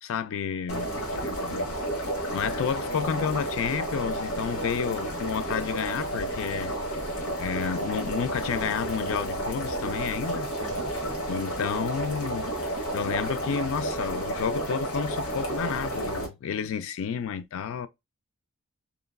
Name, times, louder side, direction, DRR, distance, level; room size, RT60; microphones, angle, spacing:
voice 1, 0.0-0.9 1.1-1.7 2.3-6.7 7.4-10.5 11.3-17.9, left 7 dB, 65° left, 0.3 m, -31 dB
sound 1, 0.7-16.3, right 1 dB, 80° left, 1.2 m, -31 dB
voice 2, 0.7-1.1 10.6-11.2, right 3 dB, 25° right, 0.3 m, -43 dB
3.0 x 2.3 x 2.2 m
head